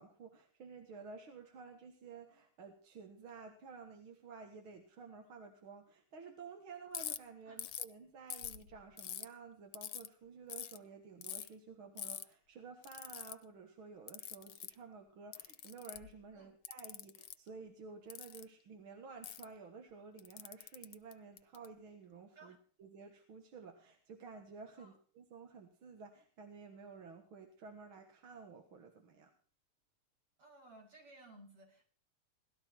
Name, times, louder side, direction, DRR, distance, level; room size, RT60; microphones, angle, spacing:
voice 1, 0.0-29.3, right 5 dB, 70° right, 3 dB, 2.4 m, -53 dB
Ratchet pawl, 6.9-7.2 7.6-7.9 8.3-9.3 9.7-10.1 10.5-10.8 11.2-11.5 12.0-12.2 12.8-13.3 14.1-14.7 15.3-16.1 16.6-17.3 18.1-18.4 19.2-19.4 20.2-21.7, left 11 dB, 85° left, 1.8 m, -44 dB
voice 2, 30.4-31.9, right 2 dB, 90° right, -1 dB, 7.2 m, -58 dB
18.0 x 12.5 x 4.5 m, 0.43 s
omnidirectional pair, 2.4 m